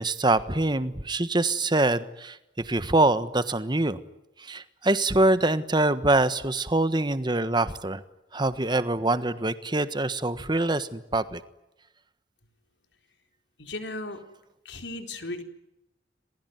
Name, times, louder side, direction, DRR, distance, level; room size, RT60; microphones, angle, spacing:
voice 1, 0.0-4.0 4.4-8.0 8.3-11.4, right 2 dB, 25° right, 13 dB, 1.4 m, -24 dB
voice 2, 13.6-14.2 14.6-15.4, left 2 dB, 75° left, 6 dB, 4.2 m, -35 dB
27.5 x 21.0 x 9.5 m, 0.91 s
head